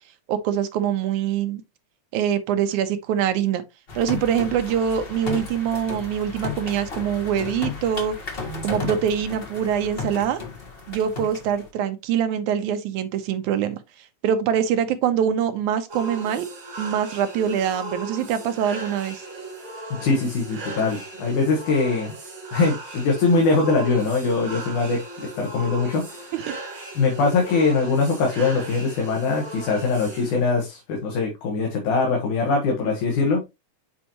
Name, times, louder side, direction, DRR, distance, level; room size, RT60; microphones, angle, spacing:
voice 1, 0.3-1.6 2.1-3.6 4.0-8.2 8.6-10.4 10.9-13.8 14.2-16.5 16.8-19.2 26.3-26.6, right 9 dB, 85° right, 2.3 m, -24 dB
sound 1, 3.9-11.7, left 4 dB, 65° left, 0.5 m, -34 dB
sound 2, 15.9-30.5, right 2 dB, 40° right, 3.2 m, -37 dB
voice 2, 20.0-22.2 22.5-25.0 25.3-26.3 27.0-33.4, left 4 dB, 85° left, 2.9 m, -22 dB
8.3 x 4.5 x 2.9 m
omnidirectional pair, 3.4 m